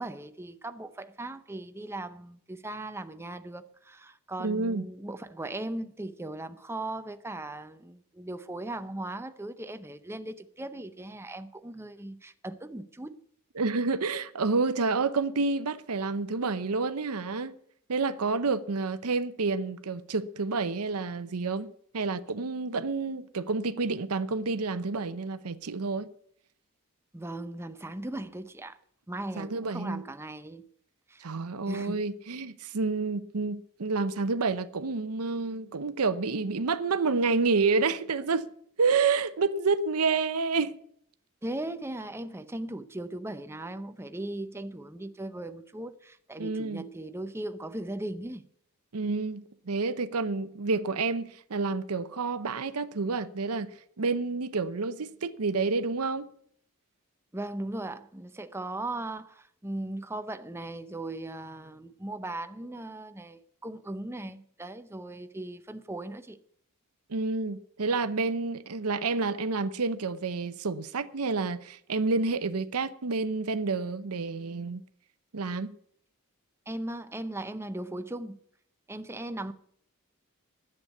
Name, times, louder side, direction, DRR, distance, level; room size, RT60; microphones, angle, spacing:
voice 1, 0.0-13.2 27.1-28.8 29.1-30.7 31.1-31.3 31.7-32.0 41.4-48.4 57.3-66.4 76.7-78.4 78.9-79.5, right 1 dB, 10° right, 0.6 m, -38 dB
voice 2, 4.4-4.9 13.6-17.5 17.9-26.1 29.4-30.0 31.2-38.5 38.8-40.7 46.4-46.8 48.9-56.3 67.1-74.8 75.3-75.7, right 4 dB, 80° right, 0.8 m, -29 dB
10.0 x 8.1 x 9.2 m
head